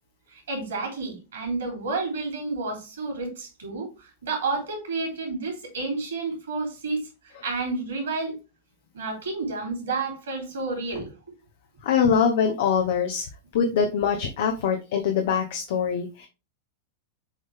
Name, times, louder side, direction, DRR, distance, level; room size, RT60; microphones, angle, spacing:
voice 1, 0.3-8.4 8.9-11.1, right 3 dB, 65° right, 3.2 m, -30 dB
voice 2, 11.8-13.3 13.5-16.3, left 7 dB, 55° left, 0.9 m, -23 dB
7.3 x 3.9 x 3.5 m
figure-of-eight pair, 90°, 0 cm